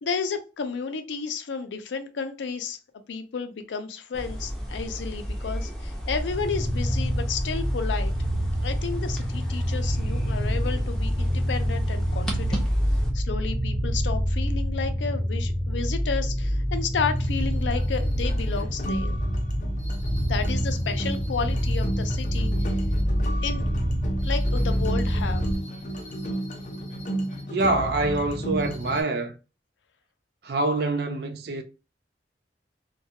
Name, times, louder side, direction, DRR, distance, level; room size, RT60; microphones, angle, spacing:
voice 1, 0.0-2.8 3.1-8.1 8.6-12.6 13.1-19.2 20.2-22.8 23.4-23.6 24.2-25.4, left 5 dB, 90° left, 0.4 m, -32 dB
sound 1, 4.1-13.1, equal, 5° left, 0.5 m, -33 dB
sound 2, 6.2-25.6, equal, 40° right, 1.0 m, -26 dB
sound 3, 16.8-29.0, right 1 dB, 45° left, 0.6 m, -33 dB
voice 2, 27.5-29.4 30.4-31.6, right 2 dB, 60° right, 0.4 m, -25 dB
2.2 x 2.2 x 2.7 m
head